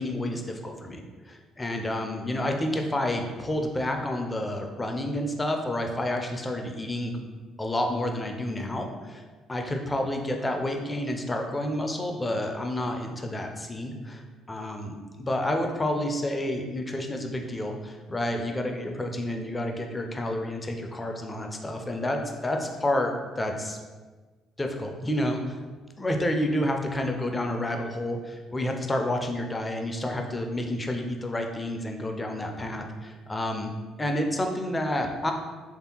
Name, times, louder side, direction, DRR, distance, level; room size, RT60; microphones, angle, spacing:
voice 1, 0.0-7.2 7.6-9.2 9.5-23.8 24.6-25.6 26.0-33.7 34.0-35.3, left 1 dB, 20° left, 3 dB, 0.4 m, -29 dB
3.3 x 2.6 x 2.8 m, 1.3 s
figure-of-eight pair, 50°, 0 cm